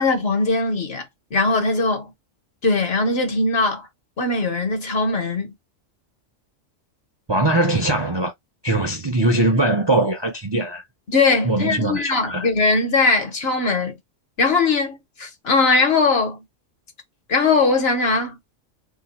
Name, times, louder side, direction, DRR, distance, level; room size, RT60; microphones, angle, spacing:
voice 1, 0.0-2.1 2.6-3.9 4.2-5.5 11.1-14.0 14.4-16.4 17.3-18.4, left 3 dB, 55° left, 1.2 m, -20 dB
voice 2, 7.3-8.3 8.6-10.8 11.4-12.5, right 2 dB, 35° right, 0.4 m, -21 dB
2.8 x 2.2 x 4.1 m
omnidirectional pair, 1.3 m